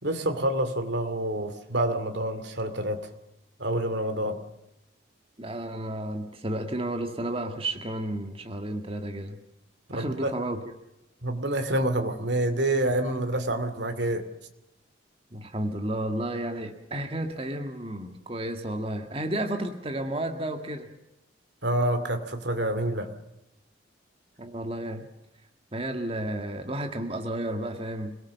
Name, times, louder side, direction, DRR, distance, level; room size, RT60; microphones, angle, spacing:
voice 1, 0.0-3.0 3.6-4.4 9.9-10.3 11.2-14.3 21.6-23.1, right 1 dB, 60° right, 8 dB, 2.5 m, -27 dB
voice 2, 5.4-9.4 9.9-10.6 15.3-20.9 24.4-25.1 25.7-28.2, right 1 dB, 30° right, 5 dB, 1.9 m, -32 dB
27.0 x 18.5 x 7.0 m, 0.88 s
head